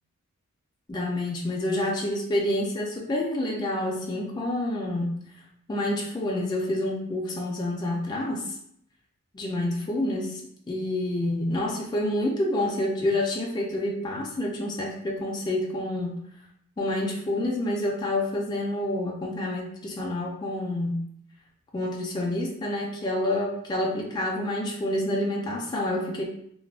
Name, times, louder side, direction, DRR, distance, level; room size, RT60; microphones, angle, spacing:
voice 1, 0.9-5.2 5.7-8.6 9.3-10.4 10.7-16.2 16.8-21.1 21.7-26.2, left 1 dB, 20° left, -2 dB, 0.3 m, -28 dB
2.3 x 2.1 x 3.3 m, 0.69 s
head